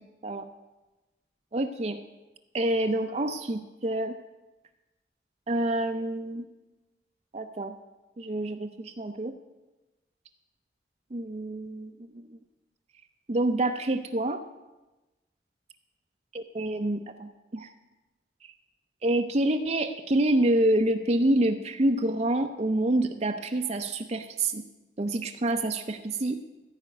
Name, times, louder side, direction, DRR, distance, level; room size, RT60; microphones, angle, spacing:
voice 1, 1.5-2.0 2.5-4.2 5.5-6.4 7.3-7.7 8.2-9.3 11.1-12.3 13.3-14.4 16.3-17.7 19.0-24.6 25.0-26.4, right 1 dB, 35° right, 6 dB, 0.6 m, -27 dB
14.5 x 5.1 x 9.1 m, 1.1 s
head